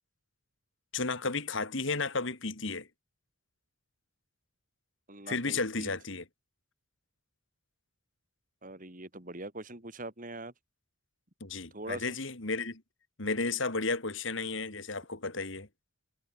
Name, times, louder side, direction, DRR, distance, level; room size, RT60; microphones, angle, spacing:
voice 1, 0.9-2.9 5.3-6.3 11.4-12.8 13.2-15.7, left 3 dB, 60° left, 2.4 m, -33 dB
voice 2, 5.1-5.9 8.6-10.5 11.7-12.1, right 2 dB, 40° right, 3.2 m, -42 dB
head